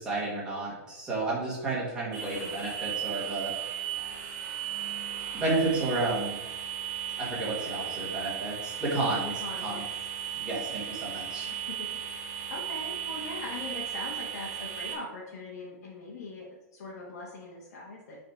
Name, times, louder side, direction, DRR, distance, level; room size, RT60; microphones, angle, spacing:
voice 1, 0.0-3.5 5.3-6.4 7.2-9.3 9.6-9.8 10.3-11.5, right 2 dB, 10° right, -6 dB, 1.9 m, -31 dB
sound 1, 2.1-14.9, right 9 dB, 35° right, 1.7 m, -36 dB
voice 2, 8.9-9.9 11.5-11.9 12.5-18.2, left 2 dB, 80° left, -4 dB, 1.6 m, -41 dB
6.6 x 4.3 x 4.5 m, 1.0 s
supercardioid pair, 170°, 9 cm